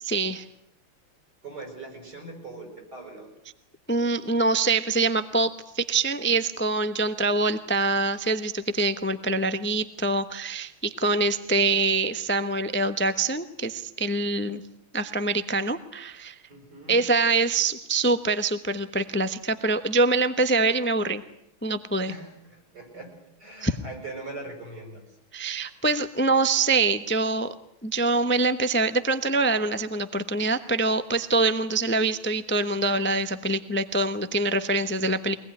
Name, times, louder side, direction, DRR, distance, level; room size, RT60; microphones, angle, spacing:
voice 1, 0.0-0.4 3.9-14.6 14.9-16.4 16.9-21.2 21.6-22.1 23.6-23.8 25.3-27.5 27.8-35.3, right 3 dB, 15° left, 11 dB, 0.4 m, -25 dB
voice 2, 1.4-3.3 16.5-17.0 22.1-25.0, right 2 dB, 50° right, 3 dB, 7.7 m, -41 dB
24.5 x 19.0 x 9.8 m, 0.76 s
omnidirectional pair, 2.3 m